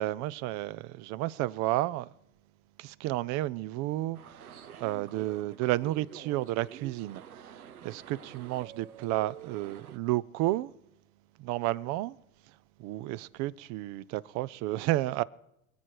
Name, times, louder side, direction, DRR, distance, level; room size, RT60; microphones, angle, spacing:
voice 1, 0.0-2.1 2.8-4.4 4.7-10.7 11.4-12.2 12.8-15.2, right 16 dB, 40° right, 0.5 m, -32 dB
sound 1, 4.1-10.0, right 9 dB, 90° right, 1.0 m, -48 dB
25.0 x 8.7 x 4.7 m
hypercardioid pair, 95°, 43 cm